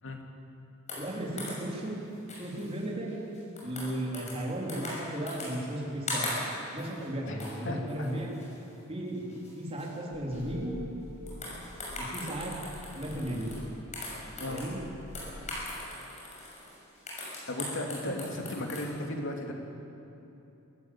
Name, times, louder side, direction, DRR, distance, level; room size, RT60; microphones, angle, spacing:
sound 1, 0.9-1.8 2.3-2.8 3.1-4.4 4.7-5.8 6.1-7.1 7.4-7.6 7.9-8.7 9.1-9.5 9.8-9.9 10.3-10.5 11.3-13.7 13.9-14.8 15.1-18.8, left 2 dB, 35° left, 6.5 m, -40 dB
voice 1, 1.0-1.9 2.4-3.2 3.6-6.4 6.7-8.3 8.9-9.2 9.6-10.7 12.0-12.5 12.9-13.5 14.5-14.8 18.0-18.1, right 1 dB, 30° right, -3 dB, 4.1 m, -35 dB
sound 2, 10.1-15.7, equal, 80° right, 3.3 m, -46 dB
voice 2, 17.5-19.5, left 1 dB, 65° left, 2 dB, 2.8 m, -35 dB
24.5 x 14.0 x 8.8 m, 2.9 s
head